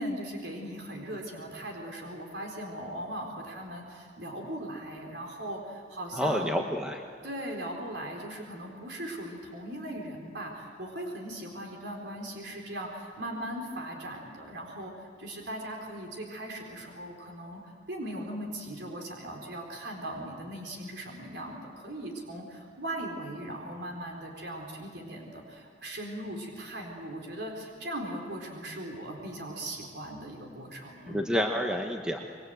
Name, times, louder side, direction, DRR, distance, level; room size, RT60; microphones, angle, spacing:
voice 1, 0.0-6.6 7.2-17.6 17.9-31.3, right 1 dB, 70° right, 1 dB, 4.3 m, -39 dB
voice 2, 6.1-7.0 31.1-32.2, equal, 5° right, 2 dB, 1.2 m, -29 dB
27.0 x 22.5 x 7.9 m, 2.5 s
head